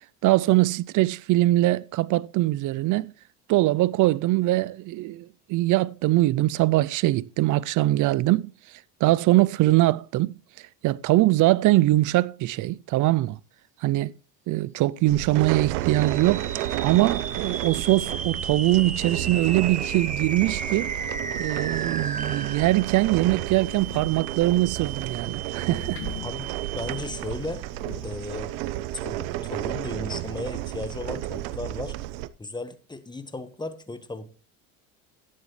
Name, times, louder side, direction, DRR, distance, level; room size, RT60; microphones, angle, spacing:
voice 1, 0.2-3.1 3.5-8.5 9.0-10.4 10.8-13.4 13.8-14.1 14.5-16.5 16.8-20.9 21.4-26.0, right 17 dB, 50° right, 0.5 m, -22 dB
sound 1, 15.1-32.3, right 16 dB, 90° right, 0.7 m, -32 dB
sound 2, 16.0-27.4, right 5 dB, 20° right, 1.3 m, -35 dB
sound 3, 23.1-28.1, left 9 dB, 65° left, 2.0 m, -44 dB
voice 2, 26.7-27.6 28.0-28.5 28.9-31.9 32.4-34.3, left 2 dB, 10° left, 1.3 m, -35 dB
12.0 x 10.5 x 3.2 m
supercardioid pair, 100°, 39 cm